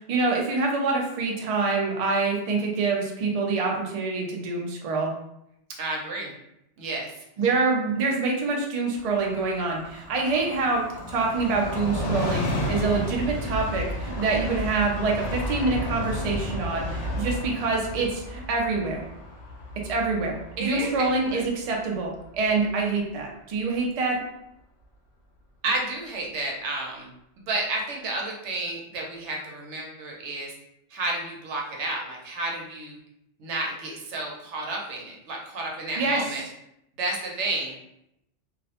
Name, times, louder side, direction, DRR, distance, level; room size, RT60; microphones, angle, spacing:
voice 1, 0.1-5.1 7.4-10.8 11.1-19.0 19.9-24.2 36.0-36.2, right 3 dB, 60° right, 0 dB, 0.4 m, -26 dB
voice 2, 5.8-6.3 6.8-7.2 20.6-21.4 25.6-27.1 27.5-30.5 30.9-33.0 33.4-36.4 37.0-37.8, right 2 dB, 85° right, -1 dB, 0.9 m, -31 dB
Train, 8.9-22.3 22.6-22.7, equal, 90° left, 0.9 m, -32 dB
2.4 x 2.0 x 2.8 m, 0.81 s
omnidirectional pair, 1.2 m